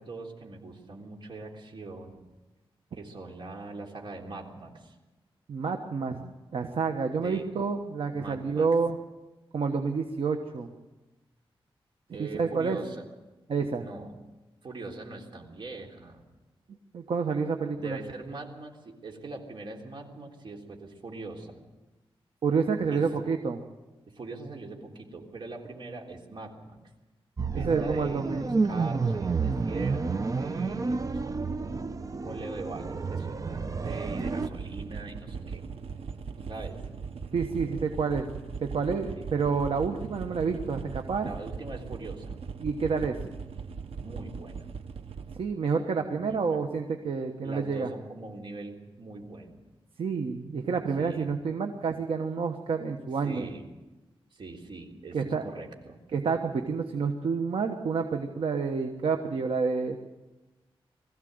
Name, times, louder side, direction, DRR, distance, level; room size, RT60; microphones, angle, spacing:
voice 1, 0.0-2.2 2.9-5.0 7.2-7.5 8.1-8.7 12.1-13.1 13.8-14.2 14.6-16.2 17.7-21.6 22.9-23.1 24.1-26.8 27.5-35.6 36.4-36.8 39.1-39.3 41.2-42.4 44.0-44.7 46.1-46.6 47.4-49.6 51.0-51.3 53.2-53.7 54.3-56.0, right 3 dB, 55° right, 0 dB, 3.6 m, -42 dB
voice 2, 5.5-9.0 9.5-10.7 12.2-12.8 13.5-13.8 16.9-18.0 22.4-23.6 27.6-28.6 37.3-38.3 38.6-41.3 42.6-43.2 45.4-47.9 50.0-53.5 55.1-55.5 56.1-60.0, right 5 dB, 70° right, 4 dB, 1.3 m, -29 dB
sound 1, 27.4-34.5, right 4 dB, 35° right, 0.8 m, -30 dB
sound 2, 33.8-45.4, right 5 dB, 90° right, 1.1 m, -39 dB
22.0 x 15.5 x 8.0 m, 1.1 s
wide cardioid pair, 125°, 10 cm